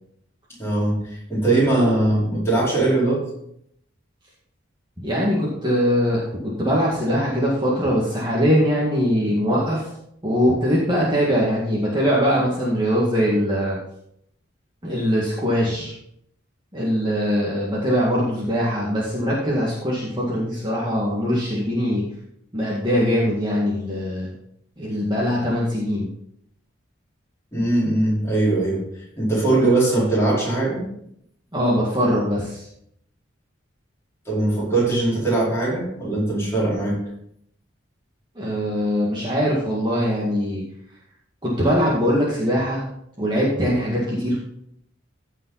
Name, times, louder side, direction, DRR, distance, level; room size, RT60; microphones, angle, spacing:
voice 1, 0.6-3.3 27.5-30.8 34.2-37.0, right 2 dB, 15° left, -7 dB, 4.8 m, -21 dB
voice 2, 5.0-9.9 10.2-13.8 14.8-15.9 16.7-22.0 22.5-24.3 24.8-26.1 31.5-32.7 38.4-40.6 41.4-42.8 43.2-44.4, equal, 25° right, -6 dB, 2.1 m, -22 dB
15.5 x 5.6 x 4.1 m, 0.73 s
head